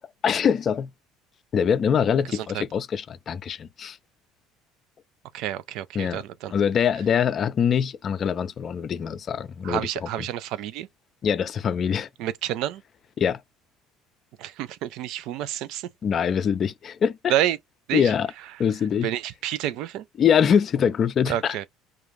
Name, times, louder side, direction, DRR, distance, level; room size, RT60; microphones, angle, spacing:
voice 1, 0.2-0.9 1.5-4.0 5.9-6.2 6.5-10.1 11.2-12.1 13.2-13.4 16.0-17.3 17.9-18.3 18.6-19.1 20.2-21.6, left 7 dB, 45° left, 0.4 m, -23 dB
voice 2, 2.3-2.6 5.3-6.5 9.6-10.9 12.2-12.8 14.4-15.9 17.3-17.6 17.9-18.1 19.0-20.0 21.3-21.7, right 12 dB, 65° right, 0.3 m, -29 dB
2.4 x 2.2 x 3.1 m
hypercardioid pair, 80°, 0 cm